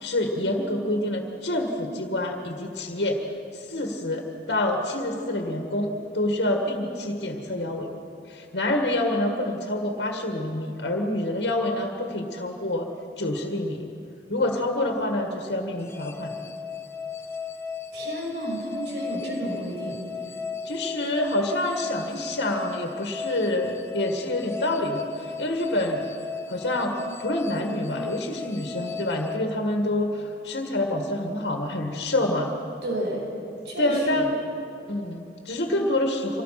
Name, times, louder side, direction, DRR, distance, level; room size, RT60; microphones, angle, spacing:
voice 1, 0.0-3.2 3.5-7.9 8.3-12.9 13.2-13.9 14.3-16.4 20.6-26.1 26.5-32.5 33.8-34.3 34.9-36.4, left 1 dB, 85° left, 3 dB, 1.8 m, -27 dB
sound 1, 15.8-30.2, left 5 dB, 15° left, 0.7 m, -36 dB
voice 2, 17.9-20.0 32.8-33.3 33.7-34.3, right 1 dB, 85° right, -1 dB, 5.6 m, -31 dB
25.5 x 18.0 x 5.9 m, 2.7 s
head